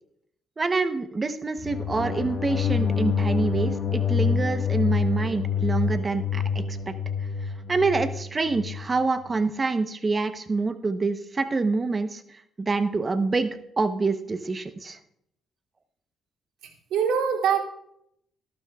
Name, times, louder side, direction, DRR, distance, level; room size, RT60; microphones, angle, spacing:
voice 1, 0.6-6.9 7.7-15.0, right 3 dB, 30° right, 9 dB, 0.8 m, -26 dB
sound 1, 1.6-8.9, left 6 dB, 60° left, 1.4 m, -26 dB
voice 2, 16.6-17.6, right 7 dB, 90° right, -2 dB, 2.6 m, -24 dB
18.5 x 12.0 x 2.3 m, 0.76 s
cardioid pair, 90°, 0 cm